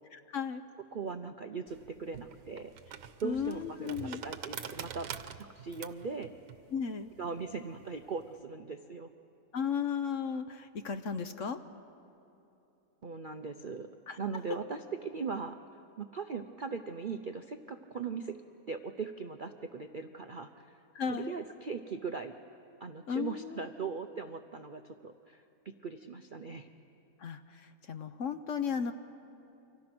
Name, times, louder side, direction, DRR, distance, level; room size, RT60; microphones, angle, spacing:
voice 1, 0.1-0.6 3.2-4.2 6.7-7.1 9.5-11.6 14.1-14.2 20.9-21.3 23.1-23.7 27.2-28.9, left 6 dB, 55° left, 9 dB, 1.1 m, -35 dB
voice 2, 0.9-2.7 3.2-5.1 5.5-6.3 7.2-9.1 13.0-13.9 14.2-15.6 16.0-18.4 18.7-20.8 21.1-22.3 22.8-26.7, right 5 dB, 50° right, 7 dB, 0.6 m, -39 dB
sound 1, 1.7-8.3, right 8 dB, 90° right, 1.6 m, -46 dB
29.5 x 25.5 x 6.1 m, 2.9 s
omnidirectional pair, 1.8 m